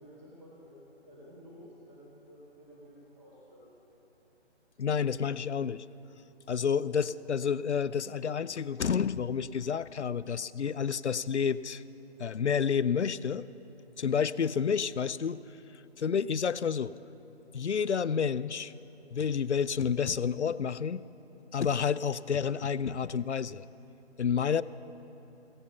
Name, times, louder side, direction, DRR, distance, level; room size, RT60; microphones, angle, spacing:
voice 1, 0.0-3.6 6.9-7.0, equal, 5° right, -14 dB, 2.1 m, -52 dB
voice 2, 4.8-5.8 6.5-11.8 12.2-13.5 14.0-15.4 16.0-16.9 17.5-18.7 19.1-21.0 21.5-23.6 24.2-24.6, left 7 dB, 75° left, 17 dB, 0.5 m, -29 dB
16.5 x 8.8 x 6.9 m, 2.9 s
figure-of-eight pair, 150°, 35 cm